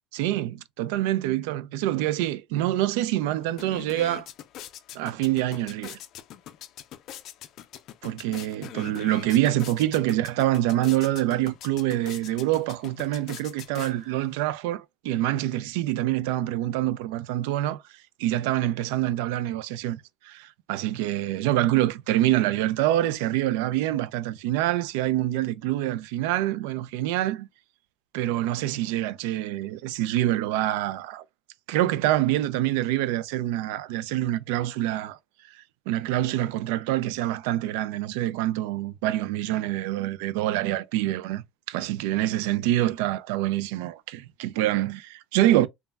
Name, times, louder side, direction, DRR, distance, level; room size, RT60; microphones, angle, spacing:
voice 1, 0.1-4.3 4.9-6.0 8.0-17.8 18.2-27.5 28.1-31.2 31.7-35.2 35.9-45.7, right 14 dB, 80° right, 0.3 m, -26 dB
sound 1, 3.0-3.1 3.4-14.3, left 11 dB, 50° left, 0.3 m, -43 dB
3.2 x 2.1 x 2.3 m
cardioid pair, 135°, 0 cm